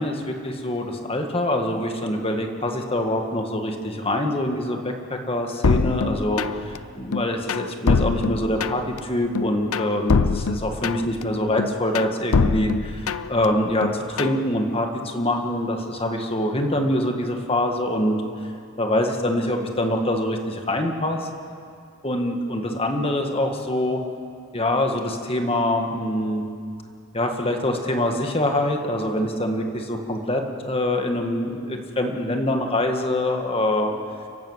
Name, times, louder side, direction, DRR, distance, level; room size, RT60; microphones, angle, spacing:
voice 1, 0.0-18.2 18.8-21.3 22.0-24.0 24.5-26.5 27.1-33.9, left 1 dB, 25° left, 3 dB, 1.7 m, -24 dB
sound 1, 5.6-6.8 7.1-9.0 9.3-11.2 11.6-13.5 13.8-14.4, left 4 dB, 75° left, 0.6 m, -23 dB
29.5 x 12.0 x 8.1 m, 2.3 s
head